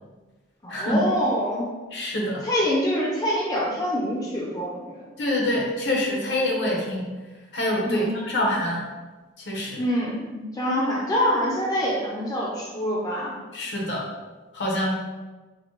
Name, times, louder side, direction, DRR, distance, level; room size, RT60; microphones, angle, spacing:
voice 1, 0.6-1.7 2.4-5.0 7.9-8.1 9.8-13.3, equal, 20° left, -4 dB, 0.5 m, -25 dB
voice 2, 1.9-2.4 5.2-7.1 7.5-8.9 9.5-9.8 13.5-14.0 14.5-14.9, left 1 dB, 70° left, -2 dB, 0.9 m, -25 dB
5.1 x 2.2 x 3.0 m, 1.2 s
head